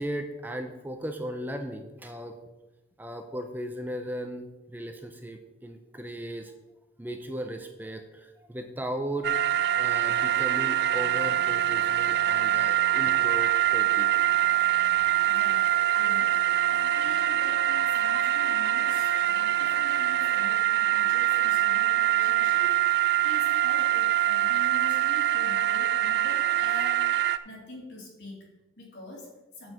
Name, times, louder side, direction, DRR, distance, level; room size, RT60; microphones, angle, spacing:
voice 1, 0.0-2.4 3.0-6.5 7.0-9.3 9.8-14.1, right 1 dB, 10° right, 5 dB, 0.6 m, -36 dB
sound 1, 9.2-27.4, right 12 dB, 55° right, 0.4 m, -24 dB
voice 2, 15.3-29.7, left 1 dB, 65° left, -3 dB, 3.3 m, -45 dB
6.9 x 6.4 x 7.3 m, 1.1 s
head